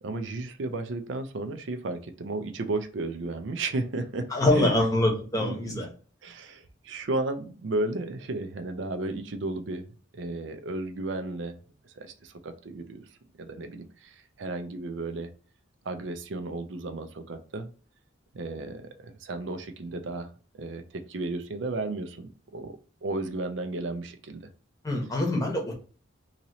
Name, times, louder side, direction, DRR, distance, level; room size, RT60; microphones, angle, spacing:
voice 1, 0.0-4.8 5.4-5.8 6.2-9.9 10.1-11.6 12.0-13.1 13.4-15.3 15.8-17.7 18.3-20.3 20.5-24.4, right 2 dB, 65° right, 7 dB, 0.5 m, -34 dB
voice 2, 4.3-5.9 24.8-25.8, left 1 dB, 20° left, 1 dB, 0.9 m, -24 dB
2.9 x 2.8 x 2.6 m, 0.38 s
head